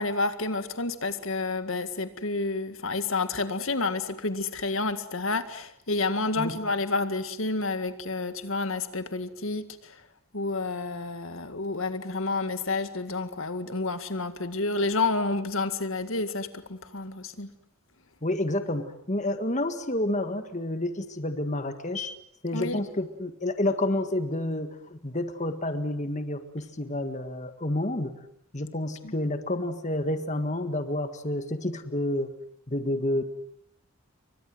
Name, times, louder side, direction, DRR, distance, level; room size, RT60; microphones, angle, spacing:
voice 1, 0.0-10.0 10.3-17.5 22.5-22.8 29.0-29.1, left 3 dB, 70° left, 10 dB, 2.0 m, -29 dB
voice 2, 18.2-22.2 22.4-28.1 28.5-32.3 32.7-33.2, left 1 dB, 35° left, 8 dB, 1.7 m, -29 dB
29.5 x 24.5 x 7.8 m, 0.72 s
head